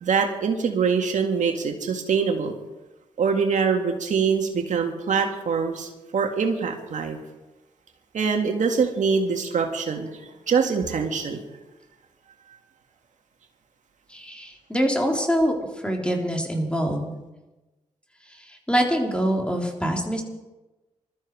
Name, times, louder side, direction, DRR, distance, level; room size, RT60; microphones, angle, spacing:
voice 1, 0.0-2.6 3.2-7.2 8.1-10.1 10.5-11.4, right 5 dB, 70° right, 3 dB, 2.0 m, -24 dB
voice 2, 14.1-15.6 15.8-17.1 18.3-20.2, equal, 10° left, 1 dB, 3.8 m, -24 dB
21.0 x 13.5 x 4.9 m, 1.1 s
cardioid pair, 60°, 13 cm